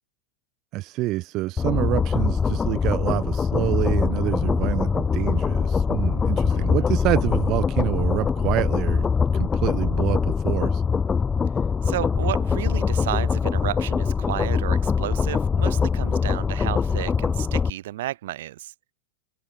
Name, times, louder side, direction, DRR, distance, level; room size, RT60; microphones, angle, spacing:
voice 1, 0.7-9.1 9.3-10.8, right 18 dB, 40° right, 2.1 m, -27 dB
sound 1, 1.6-17.7, left 5 dB, 15° left, 0.6 m, -23 dB
voice 2, 6.5-6.9 11.8-18.7, right 14 dB, 55° right, 2.9 m, -32 dB
figure-of-eight pair, 90°, 0 cm